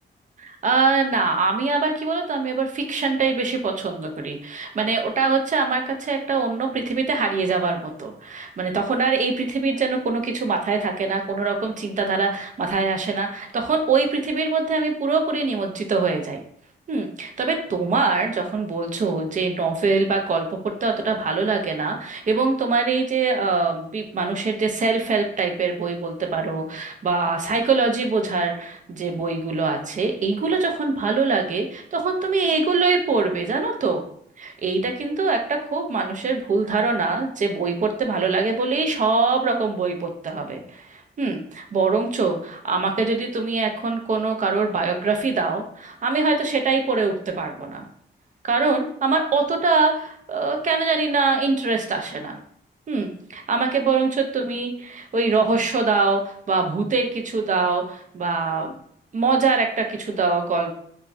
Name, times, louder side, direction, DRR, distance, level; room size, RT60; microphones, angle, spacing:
voice 1, 0.4-16.4 16.9-34.0 34.4-47.8 48.4-52.4 52.9-58.7 59.1-60.7, right 4 dB, 45° right, 4 dB, 0.5 m, -23 dB
3.2 x 2.2 x 2.4 m, 0.64 s
cardioid pair, 100°, 18 cm